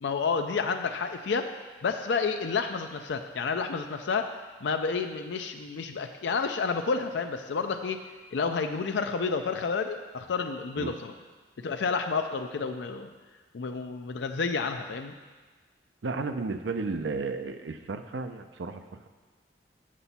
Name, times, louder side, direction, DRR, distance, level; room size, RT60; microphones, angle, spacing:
voice 1, 0.0-4.3 4.6-8.0 8.3-11.1 11.6-13.1 13.5-15.1, left 5 dB, 75° left, 6 dB, 0.4 m, -30 dB
voice 2, 16.0-19.1, right 3 dB, 80° right, 8 dB, 0.5 m, -33 dB
7.5 x 6.8 x 4.2 m, 1.4 s
head